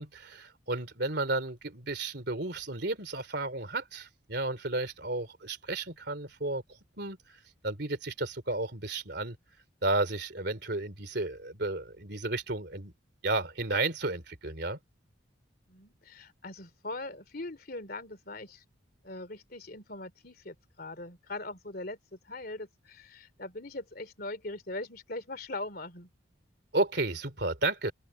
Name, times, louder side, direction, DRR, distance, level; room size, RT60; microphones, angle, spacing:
voice 1, 0.0-6.6 7.0-7.2 7.6-9.3 9.8-12.9 13.2-14.8 26.7-27.9, right 2 dB, 55° right, 3.4 m, -32 dB
voice 2, 15.7-18.6 19.0-26.1, left 2 dB, 50° left, 3.1 m, -41 dB
open air
head